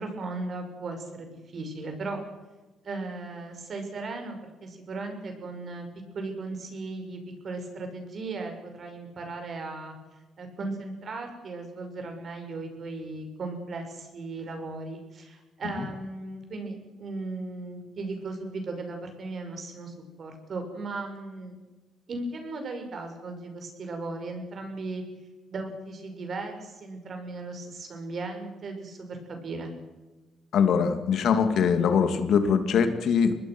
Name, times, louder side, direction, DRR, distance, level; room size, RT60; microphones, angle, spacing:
voice 1, 0.0-2.2 2.8-5.9 6.1-9.9 10.4-21.5 22.1-25.0 25.5-29.7, right 3 dB, 50° right, 5 dB, 6.1 m, -37 dB
voice 2, 30.5-33.4, left 6 dB, 70° left, 8 dB, 2.6 m, -22 dB
25.0 x 20.0 x 6.3 m, 1.2 s
cardioid pair, 90°, 0 cm